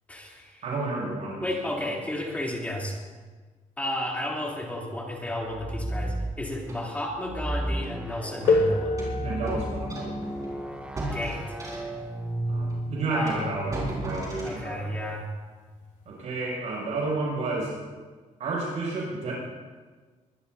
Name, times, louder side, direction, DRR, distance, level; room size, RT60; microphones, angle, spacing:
voice 1, 0.1-0.6 1.4-3.0 3.8-9.0 11.1-11.6 13.1-13.5 14.4-15.3, left 1 dB, 10° left, -3 dB, 3.3 m, -32 dB
voice 2, 0.6-2.0 9.2-10.3 12.5-14.9 16.0-17.7 18.4-19.3, right 3 dB, 60° right, -5 dB, 6.6 m, -31 dB
sound 1, 5.5-6.4 7.2-13.3, right 1 dB, 10° right, 0.8 m, -34 dB
sound 2, 6.7-6.8 7.8-8.0 8.4-12.1 12.7-12.8 13.3-14.6, right 1 dB, 25° right, 5.3 m, -36 dB
sound 3, 8.5-13.9 15.0-15.1 15.9-16.1, left 3 dB, 75° left, 2.7 m, -30 dB
23.5 x 20.5 x 2.8 m, 1.4 s
cardioid pair, 170°, 13 cm